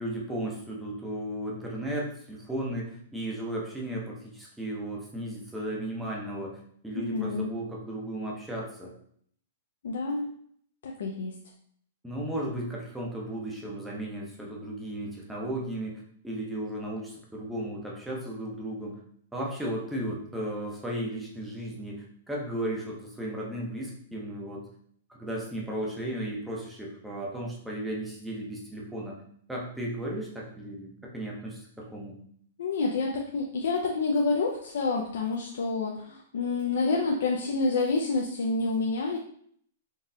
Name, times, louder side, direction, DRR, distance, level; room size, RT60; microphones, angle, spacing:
voice 1, 0.0-8.9 12.0-19.0 19.3-24.7 25.1-29.2 29.5-32.2, right 1 dB, 5° right, -3 dB, 0.6 m, -35 dB
voice 2, 6.9-7.5 9.8-10.3 10.8-11.4 32.6-39.2, left 3 dB, 75° left, -1 dB, 0.4 m, -28 dB
3.9 x 2.4 x 2.6 m, 0.63 s
hypercardioid pair, 165°, 0 cm